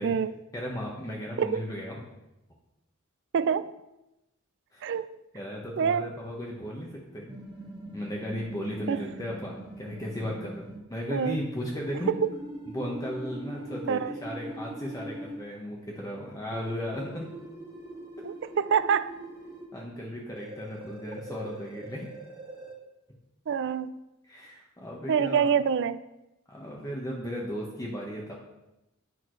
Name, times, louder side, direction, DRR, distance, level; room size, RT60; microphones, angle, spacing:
voice 1, 0.0-0.3 1.4-1.7 3.3-3.8 4.8-5.2 5.8-6.1 8.9-9.1 11.1-11.4 12.1-12.3 13.9-14.1 18.2-19.1 23.5-23.9 25.1-26.0, right 7 dB, 60° right, 15 dB, 0.4 m, -26 dB
voice 2, 0.5-2.0 4.7-4.9 5.3-7.3 7.9-12.1 12.7-17.4 19.7-22.1 24.3-25.5 26.5-28.3, equal, 15° left, -2 dB, 1.2 m, -36 dB
sound 1, 7.3-10.8 11.9-15.4 16.5-19.6 20.4-22.7, right 1 dB, 25° right, 2.0 m, -42 dB
11.0 x 8.6 x 3.2 m, 0.93 s
head